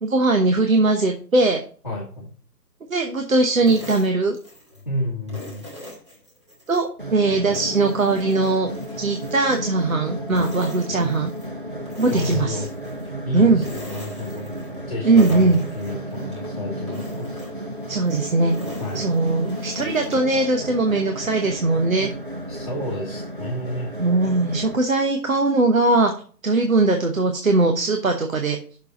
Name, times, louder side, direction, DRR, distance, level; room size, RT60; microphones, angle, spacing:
voice 1, 0.0-1.6 2.9-4.4 6.7-8.7 9.0-11.3 12.0-12.7 13.3-13.6 15.0-15.6 17.9-18.6 18.9-22.1 24.0-26.1 26.4-28.6, right 3 dB, 55° right, 4 dB, 1.1 m, -20 dB
voice 2, 1.8-2.3 4.8-5.7 12.1-12.7 13.2-14.5 14.9-17.4 18.8-19.0 22.5-23.9, left 1 dB, 20° left, -5 dB, 1.3 m, -30 dB
sound 1, 3.6-4.9 5.3-6.9 7.3-10.0 10.3-11.5 11.9-13.1 13.5-14.9 15.1-16.5 16.9-20.3, left 1 dB, 15° right, 1.5 m, -40 dB
sound 2, 7.0-24.8, equal, 35° right, 0.7 m, -33 dB
6.4 x 5.1 x 5.4 m, 0.42 s
figure-of-eight pair, 175°, 49 cm